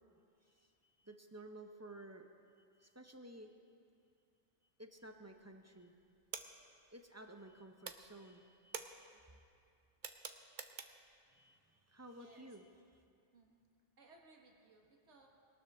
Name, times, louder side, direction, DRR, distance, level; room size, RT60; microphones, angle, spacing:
voice 1, 1.0-2.3 2.8-3.5 4.8-5.9 6.9-9.1 11.3-13.0, right 1 dB, 15° right, 4 dB, 0.9 m, -55 dB
sound 1, 5.0-5.5 5.8-7.5 7.8-11.2, right 5 dB, 45° right, 0.9 m, -49 dB
voice 2, 14.0-15.3, right 3 dB, 75° right, 0 dB, 2.0 m, -63 dB
20.5 x 19.0 x 3.7 m, 2.3 s
omnidirectional pair, 1.2 m